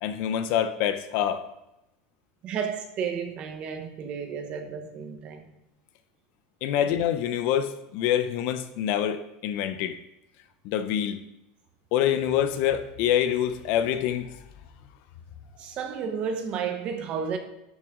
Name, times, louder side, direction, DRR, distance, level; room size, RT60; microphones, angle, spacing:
voice 1, 0.0-1.4 6.6-10.0 10.6-11.2 11.9-14.4, left 10 dB, 50° left, 0.6 m, -26 dB
voice 2, 2.4-5.5 6.8-6.9 15.6-17.4, right 6 dB, 35° right, 1.1 m, -32 dB
12.0 x 6.1 x 3.7 m
supercardioid pair, 170°, 4 cm